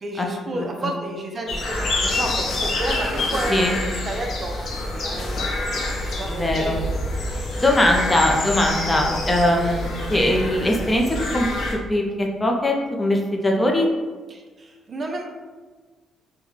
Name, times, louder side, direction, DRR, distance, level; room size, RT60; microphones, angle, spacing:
voice 1, 0.0-7.0 7.8-8.2 9.1-9.2 14.3-15.2, right 2 dB, 40° right, 2 dB, 0.5 m, -32 dB
voice 2, 0.5-0.9 3.5-3.7 6.3-6.8 7.3-13.9, left 1 dB, 20° left, 0 dB, 0.5 m, -21 dB
sound 1, 1.5-11.7, left 2 dB, 60° left, 0.7 m, -27 dB
3.9 x 2.1 x 3.1 m, 1.4 s
cardioid pair, 90°, 0 cm